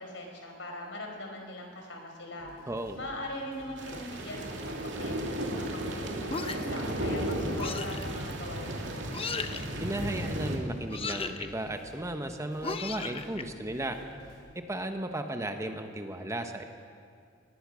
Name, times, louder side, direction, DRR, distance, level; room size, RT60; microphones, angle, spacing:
voice 1, 0.0-2.5 3.0-9.3, left 1 dB, 80° left, 2 dB, 4.7 m, -41 dB
sound 1, 2.4-14.4, left 1 dB, 60° left, 6.0 m, -53 dB
voice 2, 2.7-3.0 9.8-14.0 14.5-16.6, right 1 dB, 15° right, 6 dB, 1.2 m, -35 dB
sound 2, 3.8-10.6, right 1 dB, 70° right, 2.7 m, -34 dB
sound 3, 6.3-6.8 7.6-8.0 9.1-9.6 10.9-11.5 12.6-13.4, left 4 dB, 30° left, 0.9 m, -35 dB
22.5 x 19.5 x 6.4 m, 2.3 s
head